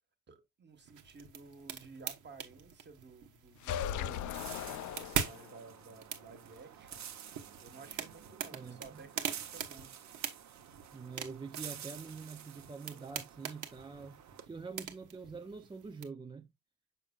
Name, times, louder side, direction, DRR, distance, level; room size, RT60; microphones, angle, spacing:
voice 1, 0.3-7.0 7.6-10.1, right 4 dB, 35° right, 1.4 m, -54 dB
sound 1, 0.8-16.1, right 8 dB, 85° right, 1.2 m, -43 dB
sound 2, 3.6-5.7, left 10 dB, 75° left, 0.5 m, -38 dB
sound 3, 4.1-14.5, right 9 dB, 65° right, 1.0 m, -50 dB
voice 2, 8.5-9.1 10.9-14.2 14.5-16.5, right 4 dB, 15° right, 0.3 m, -45 dB
6.5 x 6.1 x 2.3 m
cardioid pair, 130°, 30 cm